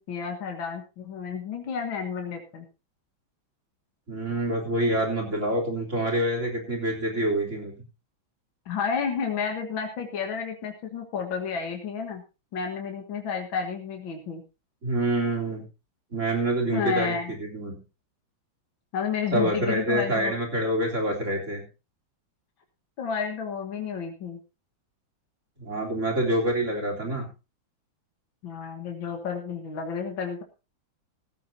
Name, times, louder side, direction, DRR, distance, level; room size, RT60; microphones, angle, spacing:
voice 1, 0.0-2.7 8.7-12.2 12.5-14.4 16.7-17.3 18.9-20.3 23.0-24.4 28.4-30.4, left 6 dB, 80° left, 3 dB, 2.4 m, -31 dB
voice 2, 4.1-7.7 14.8-15.6 16.1-17.8 19.3-21.6 25.6-27.3, right 1 dB, 35° right, 0 dB, 4.0 m, -26 dB
16.0 x 13.5 x 2.8 m, 0.29 s
omnidirectional pair, 2.1 m